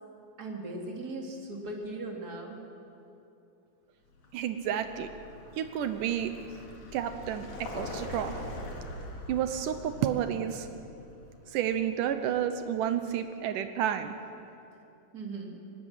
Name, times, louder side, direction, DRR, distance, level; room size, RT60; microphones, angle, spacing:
voice 1, 0.4-2.6 14.7-14.9 15.1-15.6, right 2 dB, 30° right, 0 dB, 3.0 m, -38 dB
Vehicle, 4.1-12.9, left 1 dB, 75° left, 4.4 m, -43 dB
voice 2, 4.3-5.1 5.6-6.3 6.9-8.3 9.3-10.7 11.5-14.2, right 9 dB, 80° right, 8 dB, 2.4 m, -30 dB
25.5 x 19.5 x 7.4 m, 2.7 s
omnidirectional pair, 3.7 m